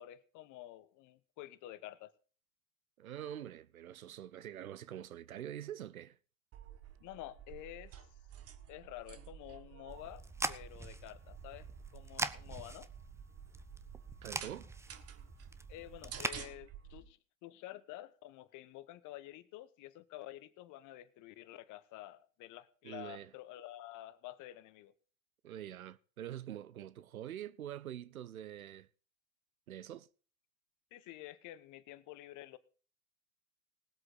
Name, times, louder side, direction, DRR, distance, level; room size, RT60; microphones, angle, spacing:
voice 1, 0.0-2.1 7.0-7.9 8.7-12.9 15.7-24.9 30.9-32.6, left 14 dB, 45° left, 1.2 m, -50 dB
voice 2, 3.0-6.2 14.2-14.7 22.8-23.3 25.4-28.9 29.7-30.1, right 11 dB, 90° right, 0.7 m, -45 dB
sound 1, 6.5-17.0, right 9 dB, 35° right, 1.5 m, -52 dB
sound 2, 9.9-16.4, right 2 dB, 5° right, 0.7 m, -43 dB
20.0 x 7.9 x 4.0 m
hypercardioid pair, 85°, 41 cm